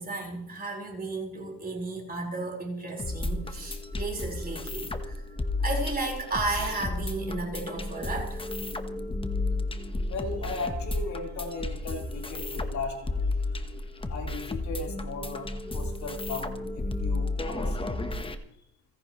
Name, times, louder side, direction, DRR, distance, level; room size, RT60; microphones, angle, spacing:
voice 1, 0.0-5.2 5.6-8.5, right 3 dB, 20° right, 0 dB, 4.5 m, -33 dB
sound 1, 3.0-18.4, left 2 dB, 15° left, 1.1 m, -32 dB
voice 2, 10.0-13.6 14.1-18.0, left 3 dB, 45° left, 0 dB, 4.0 m, -37 dB
29.5 x 10.5 x 3.1 m, 0.79 s
cardioid pair, 145°, 40 cm